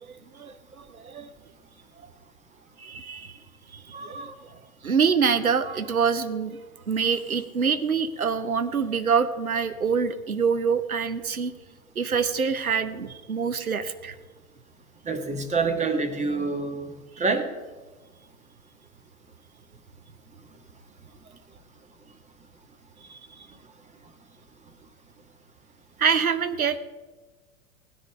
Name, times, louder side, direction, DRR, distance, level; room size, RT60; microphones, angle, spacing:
voice 1, 0.0-1.3 2.8-3.4 3.7-4.3 4.8-6.6 6.9-11.5 12.0-14.2 23.1-23.5 26.0-26.8, right 6 dB, 85° right, 11 dB, 0.8 m, -26 dB
voice 2, 3.9-4.3 5.6-5.8 15.0-16.9 17.2-17.5, right 4 dB, 15° right, 6 dB, 1.6 m, -27 dB
17.5 x 9.8 x 5.1 m, 1.3 s
figure-of-eight pair, 95°, 42 cm